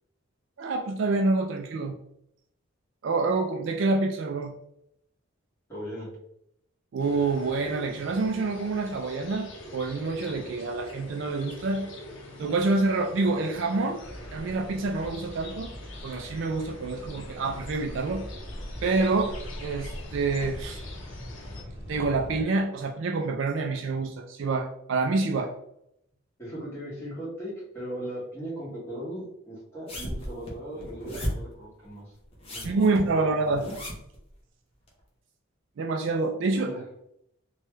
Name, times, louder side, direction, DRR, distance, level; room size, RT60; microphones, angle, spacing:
voice 1, 0.6-2.0 3.0-4.5 6.9-11.9 12.4-14.0 14.3-15.7 16.0-18.2 18.8-19.3 19.6-20.8 21.9-25.5 32.6-33.7 35.8-36.7, right 3 dB, 65° right, 3 dB, 0.3 m, -27 dB
voice 2, 5.7-6.1 26.4-32.1 32.5-33.3 36.5-36.8, right 1 dB, 10° left, -9 dB, 1.4 m, -38 dB
sound 1, 7.0-21.6, left 1 dB, 65° left, 0.6 m, -45 dB
sound 2, 14.0-22.4, equal, 5° right, 1.5 m, -41 dB
sound 3, 29.9-31.5 32.3-34.2 34.9-35.0, equal, 25° left, 0.6 m, -35 dB
3.0 x 2.3 x 3.1 m, 0.76 s
head